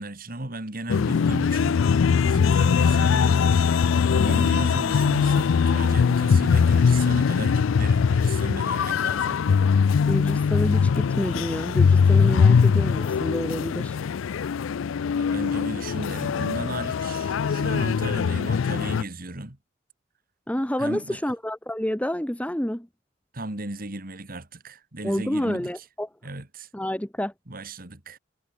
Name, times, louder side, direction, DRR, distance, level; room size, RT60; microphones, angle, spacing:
voice 1, 0.0-1.8 2.2-3.7 4.1-9.4 14.4-14.5 15.0-19.6 20.8-21.2 23.3-25.7 26.2-26.7 27.5-28.2, right 2 dB, 45° right, 2.4 m, -35 dB
sound 1, 0.9-19.0, left 6 dB, 80° left, 0.4 m, -21 dB
voice 2, 10.1-14.0 20.5-22.9 25.0-26.1 26.7-27.3, equal, 5° left, 1.1 m, -28 dB
head